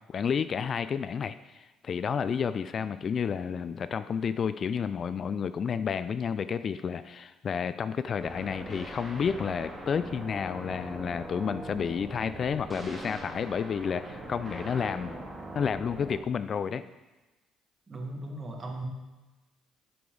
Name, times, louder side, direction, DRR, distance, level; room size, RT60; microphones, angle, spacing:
voice 1, 0.1-15.1 15.5-16.8, left 6 dB, 50° left, 13 dB, 0.3 m, -31 dB
sound 1, 8.2-16.2, right 1 dB, 15° right, 2.0 m, -41 dB
voice 2, 17.9-18.8, right 2 dB, 30° right, 1 dB, 1.7 m, -37 dB
8.3 x 6.9 x 3.9 m, 1.1 s
supercardioid pair, 80°, 0 cm